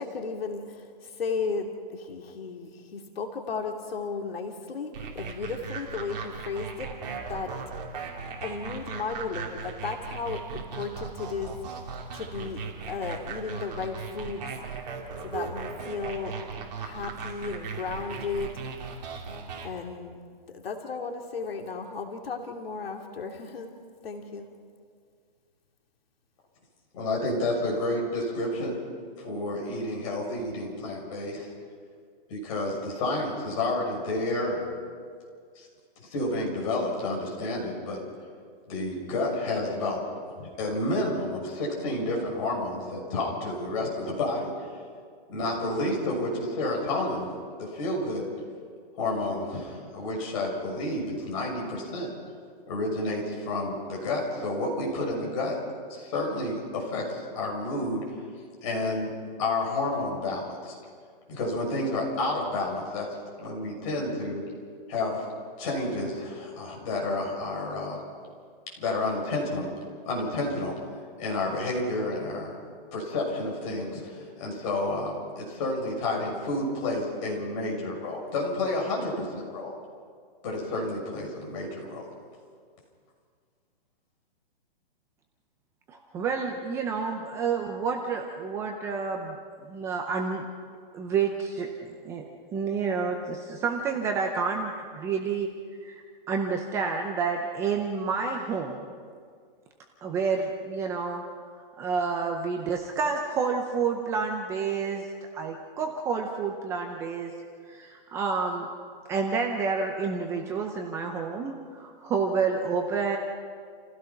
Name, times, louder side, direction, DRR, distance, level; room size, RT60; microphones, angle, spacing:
voice 1, 0.0-6.9 7.3-7.5 8.4-11.8 12.1-14.4 15.2-16.3 16.8-18.6 19.6-20.2 20.5-23.7 24.0-24.5, left 4 dB, 85° left, 2 dB, 2.6 m, -34 dB
sound 1, 4.9-19.7, right 5 dB, 45° right, 3.1 m, -38 dB
voice 2, 26.9-28.8 29.2-31.5 32.3-34.7 35.5-35.7 36.1-38.0 38.7-40.0 40.4-44.5 45.3-47.3 47.6-48.3 49.0-52.1 52.7-55.5 55.9-58.0 58.6-59.1 59.4-60.7 61.3-63.1 63.4-64.4 64.9-65.2 65.6-68.0 68.8-69.7 70.0-70.7 71.1-72.5 72.9-79.8 80.4-82.0, left 2 dB, 35° left, -2 dB, 6.5 m, -30 dB
voice 3, 85.9-89.4 89.7-90.4 90.9-91.7 92.0-92.2 92.5-95.5 95.8-96.0 96.3-98.8 100.0-101.3 101.8-105.1 105.3-107.3 107.7-108.7 109.1-113.2, right 5 dB, 10° right, 2 dB, 0.6 m, -29 dB
29.0 x 16.0 x 5.9 m, 2.1 s
hypercardioid pair, 165°, 29 cm